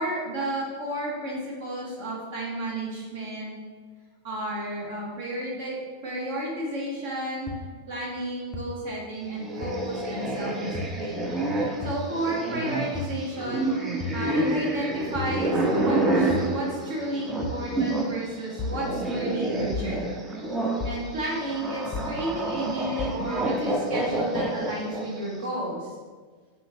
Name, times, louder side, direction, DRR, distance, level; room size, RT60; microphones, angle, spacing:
voice 1, 0.0-3.5 4.2-5.8 6.0-7.6 7.9-11.3 11.8-20.1 20.8-25.9, right 1 dB, 50° right, -3 dB, 1.0 m, -32 dB
sound 1, 7.5-7.6 8.5-8.6 9.6-9.7 10.7-10.9 11.8-12.0 12.9-13.1 14.0-14.2 15.1-15.4 16.3-16.5 17.4-17.6 18.6-18.8 19.7-19.9 20.8-21.0 21.9-22.1 23.0-23.2, left 4 dB, 25° left, 0.6 m, -33 dB
sound 2, 9.4-18.1 18.4-25.2, right 2 dB, 20° right, 0.6 m, -28 dB
5.6 x 2.5 x 2.8 m, 1.5 s
figure-of-eight pair, 90°, 0 cm